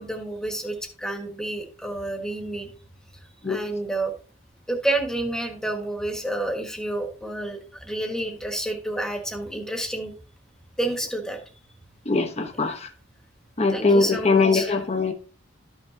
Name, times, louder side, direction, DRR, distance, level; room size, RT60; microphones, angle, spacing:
voice 1, 0.0-2.7 3.4-4.1 4.7-10.1 10.8-11.4 12.6-12.7 13.7-14.8, right 1 dB, 5° left, 1.6 m, -29 dB
voice 2, 12.1-12.9 13.6-15.1, left 3 dB, 35° left, 1.2 m, -21 dB
12.5 x 5.8 x 2.9 m
head